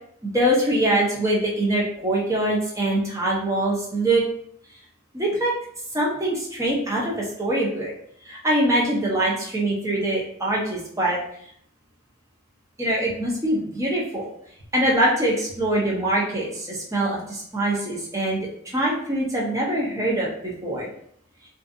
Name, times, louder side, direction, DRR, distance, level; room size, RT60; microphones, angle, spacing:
voice 1, 0.2-4.2 5.1-5.5 5.9-7.9 8.2-11.2 12.8-14.3 14.7-20.9, right 1 dB, 15° right, -3 dB, 0.5 m, -23 dB
2.5 x 2.4 x 2.4 m, 0.68 s
head